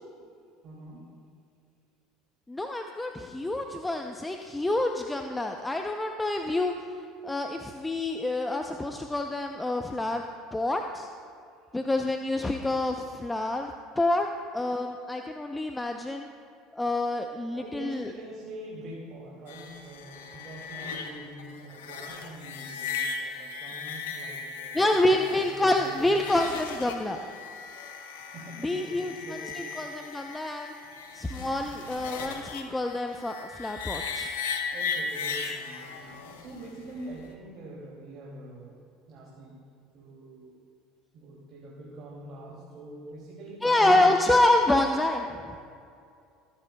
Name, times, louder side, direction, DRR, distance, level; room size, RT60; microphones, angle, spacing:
voice 1, 0.6-1.1 17.5-26.1 28.2-29.7 30.8-30.9 34.7-38.8 39.1-39.6 39.9-40.6 41.1-44.1, right 1 dB, 50° right, -4 dB, 2.5 m, -44 dB
voice 2, 2.5-6.7 7.2-10.2 10.5-11.1 11.7-14.3 14.5-16.3 16.7-18.1 24.7-27.2 28.6-30.7 31.1-34.3 43.6-45.6, left 2 dB, 10° left, 4 dB, 0.6 m, -27 dB
sound 1, 19.5-37.3, left 5 dB, 85° left, 1.0 m, -37 dB
21.5 x 9.9 x 2.3 m, 2.4 s
hypercardioid pair, 85°, 0 cm